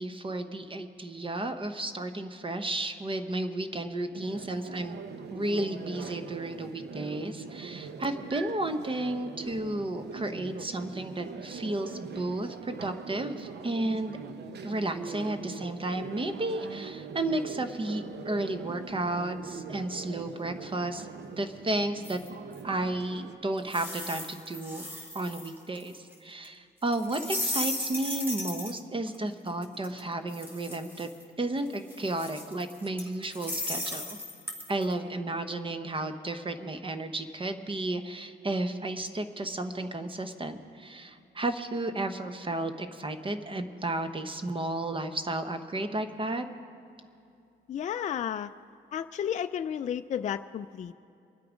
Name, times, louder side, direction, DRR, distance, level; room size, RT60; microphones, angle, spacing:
voice 1, 0.0-5.0 5.3-14.2 14.6-21.1 21.4-22.2 22.6-24.9 25.1-31.1 31.4-34.2 34.7-46.5, right 2 dB, 25° right, 8 dB, 0.9 m, -33 dB
sound 1, 4.1-23.4, right 6 dB, 60° right, 0.8 m, -42 dB
sound 2, 22.0-22.6 23.7-26.1 26.4-26.5 26.9-28.8 29.1-29.2 29.5-31.2 31.7-34.8, left 1 dB, 10° right, 2.2 m, -36 dB
voice 2, 47.7-48.5 48.9-50.9, left 9 dB, 35° left, 9 dB, 0.4 m, -32 dB
23.5 x 8.4 x 5.1 m, 2.6 s
cardioid pair, 90°, 20 cm